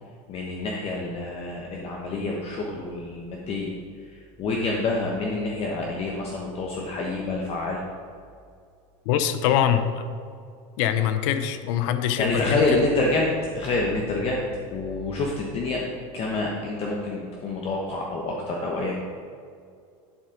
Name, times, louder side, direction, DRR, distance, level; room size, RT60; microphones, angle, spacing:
voice 1, 0.3-3.7 4.1-7.8 12.2-13.3 13.5-14.4 14.7-15.8 16.1-19.0, left 2 dB, 35° left, -2 dB, 1.1 m, -27 dB
voice 2, 9.1-10.0 10.8-12.6, left 9 dB, 70° left, 9 dB, 0.7 m, -23 dB
11.0 x 4.3 x 5.1 m, 2.3 s
supercardioid pair, 135°, 17 cm